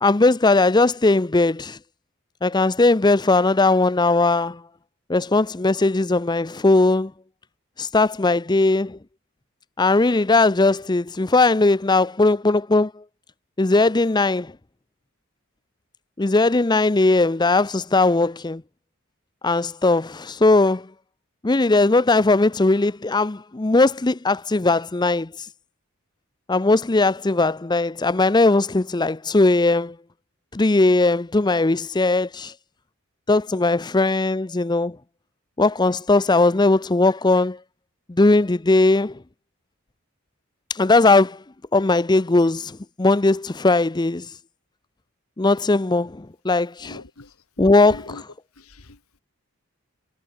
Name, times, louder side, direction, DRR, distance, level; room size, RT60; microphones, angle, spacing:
voice 1, 0.0-1.8 2.4-4.6 5.1-7.1 7.8-9.0 9.8-12.9 13.6-14.5 16.2-18.6 19.4-20.9 21.4-25.3 26.5-29.9 30.5-32.5 33.3-35.0 35.6-37.6 38.1-39.1 40.7-41.4 41.7-44.3 45.4-47.0 47.6-48.0, left 2 dB, 20° left, 0.6 m, -19 dB
voice 2, 46.8-48.2 48.6-49.0, left 2 dB, 85° left, 2.1 m, -42 dB
head